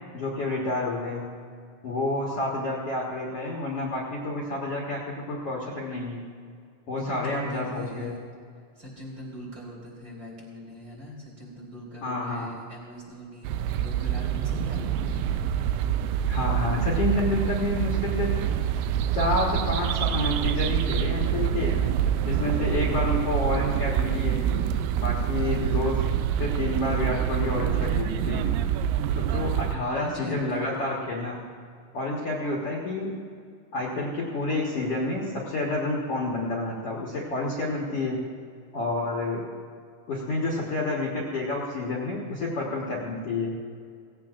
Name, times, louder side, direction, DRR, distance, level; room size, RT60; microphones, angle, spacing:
voice 1, 0.1-1.2 1.8-5.0 5.3-6.2 6.9-8.1 12.0-12.5 16.3-18.3 19.1-21.7 22.2-24.4 24.9-26.0 26.4-28.4 29.2-31.4 31.9-33.1 33.7-38.2 38.7-39.4 40.1-43.5, left 2 dB, 55° left, -4 dB, 1.9 m, -29 dB
voice 2, 7.0-8.2 8.7-15.4 29.7-30.8, left 1 dB, 25° right, -3 dB, 3.4 m, -40 dB
sound 1, 13.4-29.8, right 9 dB, 85° right, 2.3 m, -26 dB
17.5 x 16.0 x 2.5 m, 2.2 s
omnidirectional pair, 4.0 m